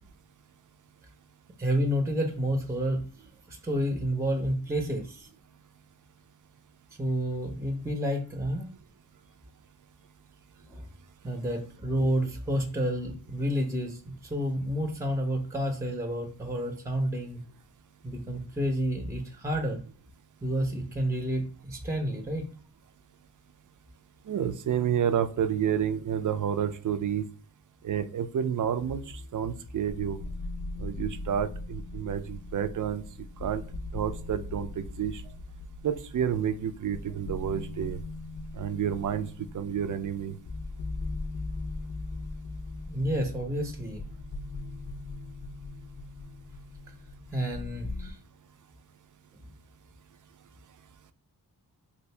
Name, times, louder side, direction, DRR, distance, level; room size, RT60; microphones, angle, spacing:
voice 1, 1.6-3.1 3.5-5.3 7.0-8.7 10.6-10.8 11.2-17.4 18.0-19.8 20.4-22.5 42.9-44.0 47.3-48.2, equal, 10° right, 4 dB, 0.6 m, -30 dB
voice 2, 24.3-27.2 27.8-29.0 29.3-30.2 30.8-33.0 33.4-33.6 33.9-35.2 35.8-38.0 38.6-39.3 39.5-40.3, right 9 dB, 55° right, 11 dB, 0.5 m, -29 dB
sound 1, 28.7-48.1, left 2 dB, 55° left, 0.5 m, -39 dB
2.7 x 2.5 x 3.2 m, 0.40 s
cardioid pair, 55°, 39 cm